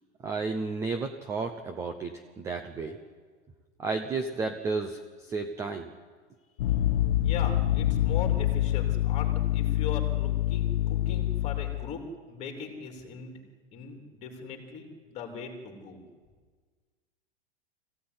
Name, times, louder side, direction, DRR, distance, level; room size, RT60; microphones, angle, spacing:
voice 1, 0.2-3.0 3.8-5.0 5.3-5.9, right 4 dB, 10° right, 6 dB, 0.7 m, -32 dB
sound 1, 6.6-11.9, left 13 dB, 55° left, 1.3 m, -26 dB
voice 2, 7.2-12.0 12.3-13.4 13.7-16.0, left 5 dB, 20° left, 3 dB, 3.3 m, -39 dB
24.5 x 16.5 x 9.6 m, 1.5 s
supercardioid pair, 170°, 31 cm